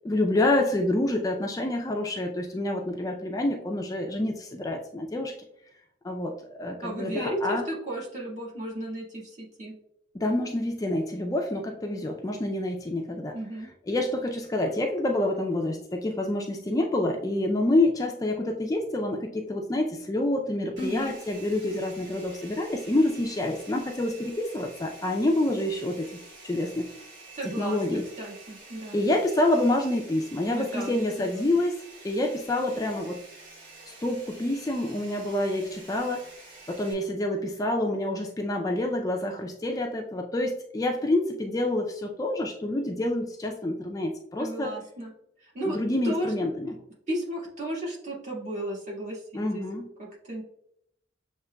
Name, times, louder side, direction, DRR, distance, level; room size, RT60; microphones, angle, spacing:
voice 1, 0.0-5.3 6.0-7.6 10.1-13.4 13.9-26.9 27.4-28.1 28.9-31.8 32.0-33.2 33.9-36.3 36.7-44.7 45.6-46.8 49.3-49.9, left 1 dB, 20° left, 2 dB, 0.3 m, -27 dB
voice 2, 6.8-9.7 13.3-13.7 20.8-21.2 27.3-29.0 30.5-31.5 44.4-45.1 45.4-45.8 46.0-46.3 47.1-49.6 50.0-50.4, right 1 dB, 40° right, -4 dB, 1.6 m, -34 dB
Domestic sounds home sounds, 20.8-36.9, right 3 dB, 65° right, 1.5 m, -48 dB
6.8 x 2.9 x 2.2 m, 0.74 s
head